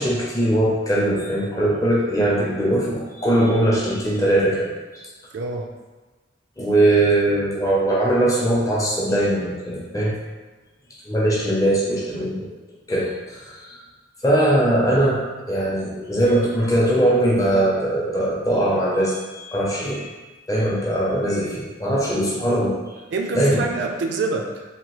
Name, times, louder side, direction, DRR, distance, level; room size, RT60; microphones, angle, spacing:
voice 1, 0.0-4.7 4.9-5.1 6.6-10.1 11.1-12.5 12.9-13.8 14.2-15.2 15.5-20.1 20.5-22.8 23.3-23.6, right 1 dB, 15° left, -5 dB, 0.5 m, -20 dB
voice 2, 5.3-5.7 9.0-9.1 12.1-12.2 23.1-24.6, right 3 dB, 65° right, 2 dB, 0.3 m, -26 dB
2.9 x 2.2 x 3.0 m, 1.2 s
head